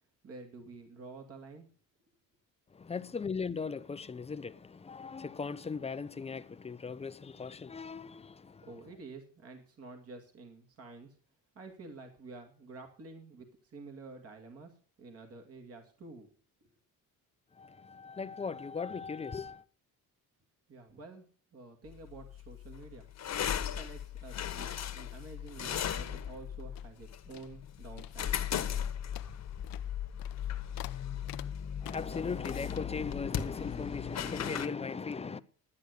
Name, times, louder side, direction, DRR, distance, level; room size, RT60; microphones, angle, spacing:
voice 1, 0.2-1.7 8.6-11.2 11.5-14.7 15.0-16.3 16.6-16.7 20.7-21.2 21.5-23.1 23.6-28.5, right 3 dB, 40° right, 2.4 m, -49 dB
voice 2, 2.7-8.7 17.5-19.6 31.8-35.4, left 5 dB, 20° left, 0.6 m, -38 dB
sound 1, 21.9-34.7, left 9 dB, 50° left, 1.3 m, -37 dB
sound 2, 25.4-27.0 27.3-27.7 28.0-28.3 28.5-32.8, left 15 dB, 80° left, 0.8 m, -50 dB
12.0 x 9.8 x 6.6 m
cardioid pair, 140°, 35 cm